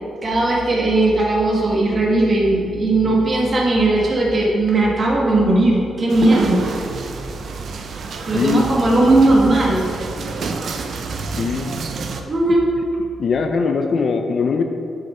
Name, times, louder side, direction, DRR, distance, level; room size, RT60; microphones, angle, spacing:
voice 1, 0.2-6.6 8.3-9.8 12.2-12.7, right 2 dB, 30° right, -3 dB, 1.3 m, -17 dB
sound 1, 6.1-12.2, right 4 dB, 50° right, 0.5 m, -28 dB
voice 2, 11.4-11.7 13.2-14.6, left 5 dB, 40° left, 5 dB, 0.4 m, -21 dB
7.0 x 6.6 x 4.3 m, 2.6 s
wide cardioid pair, 170°, 0 cm